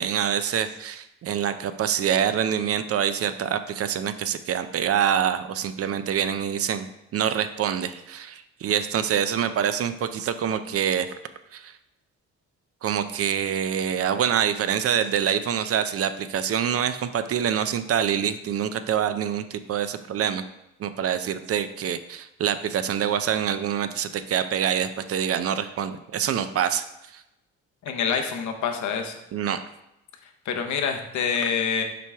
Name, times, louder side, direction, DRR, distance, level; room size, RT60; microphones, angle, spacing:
voice 1, 0.0-6.9 7.1-11.1 11.5-11.7 12.8-20.4 20.8-26.8 27.1-27.2 29.3-29.6, right 9 dB, 50° right, 11 dB, 0.5 m, -25 dB
voice 2, 27.8-29.1 30.4-31.8, left 6 dB, 70° left, 5 dB, 0.9 m, -26 dB
5.9 x 4.7 x 3.4 m, 0.88 s
cardioid pair, 90°, 30 cm